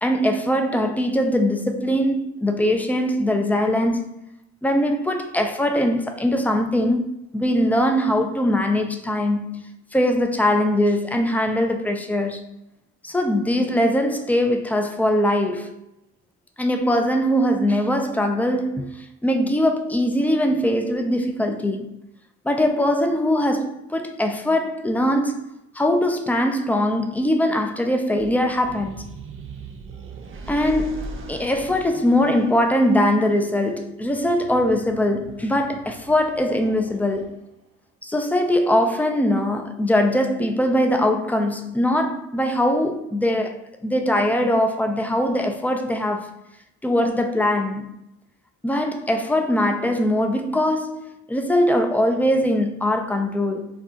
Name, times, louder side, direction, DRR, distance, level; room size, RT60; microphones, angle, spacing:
voice 1, 0.0-4.1 4.6-9.6 9.9-12.5 13.0-15.8 16.6-21.9 22.4-25.5 25.7-29.1 30.5-37.4 38.0-43.6 43.8-46.4 46.8-47.9 48.6-53.7, left 1 dB, 5° left, 0.3 m, -21 dB
sound 1, 28.1-37.7, right 3 dB, 45° right, 0.5 m, -40 dB
2.3 x 2.2 x 3.7 m
cardioid pair, 90°, 30 cm